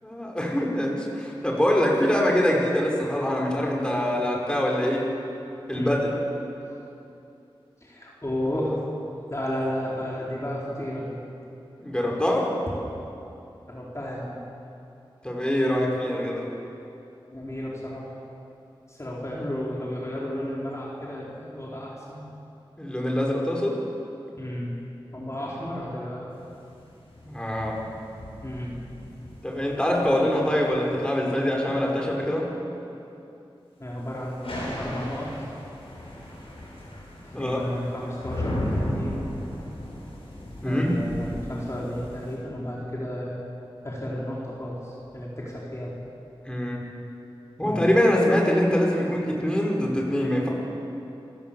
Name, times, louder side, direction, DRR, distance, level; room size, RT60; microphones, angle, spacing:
voice 1, 0.0-5.1 5.7-6.1 11.8-12.5 15.2-16.5 22.8-23.8 27.2-27.8 29.4-32.5 37.3-37.6 40.6-41.0 46.4-46.8 47.6-50.5, left 1 dB, 10° left, -2 dB, 5.1 m, -24 dB
voice 2, 7.8-8.8 9.3-11.2 13.7-14.4 17.3-18.1 18.9-22.3 24.4-24.7 25.1-26.4 28.4-28.7 33.8-35.3 37.2-39.2 40.6-43.4 43.8-46.0 47.6-47.8, equal, 30° left, -5 dB, 4.4 m, -32 dB
sound 1, 26.3-31.8 34.2-42.4, left 1 dB, 85° left, 6.8 m, -36 dB
27.5 x 15.5 x 7.2 m, 2.8 s
wide cardioid pair, 45°, 9 cm